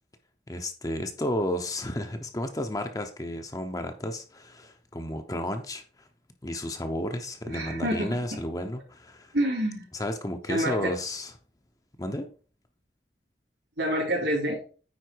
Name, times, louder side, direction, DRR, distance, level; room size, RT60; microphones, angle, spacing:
voice 1, 0.5-6.1 6.4-9.3 9.9-11.3 12.0-12.3, left 1 dB, 20° left, 6 dB, 0.8 m, -32 dB
voice 2, 7.5-8.2 9.3-9.9 10.5-10.8 13.8-14.6, equal, 70° right, -6 dB, 3.6 m, -27 dB
9.5 x 4.5 x 4.6 m, 0.37 s
head